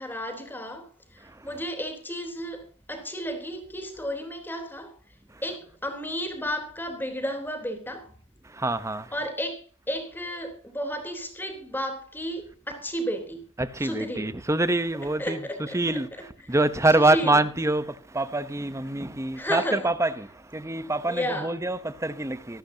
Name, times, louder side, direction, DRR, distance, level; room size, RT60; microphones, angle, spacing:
voice 1, 0.0-4.9 5.4-8.1 9.1-13.4 13.8-14.4 15.2-16.0 16.4-16.5 16.9-17.4 19.3-19.9 21.0-21.6, equal, 10° left, 3.6 m, -33 dB
voice 2, 8.4-9.1 13.6-15.4 15.7-16.1 16.5-22.6, right 2 dB, 15° right, 0.8 m, -25 dB
26.5 x 12.0 x 2.8 m
head